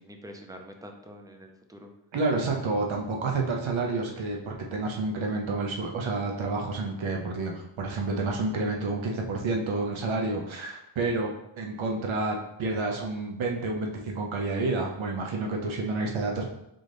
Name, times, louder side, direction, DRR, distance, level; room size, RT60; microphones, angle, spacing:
voice 1, 0.0-1.9 2.7-2.8, equal, 10° right, 4 dB, 0.5 m, -46 dB
voice 2, 2.1-16.5, right 3 dB, 80° right, 1 dB, 0.8 m, -29 dB
3.9 x 3.8 x 3.3 m, 0.82 s
wide cardioid pair, 105°, 47 cm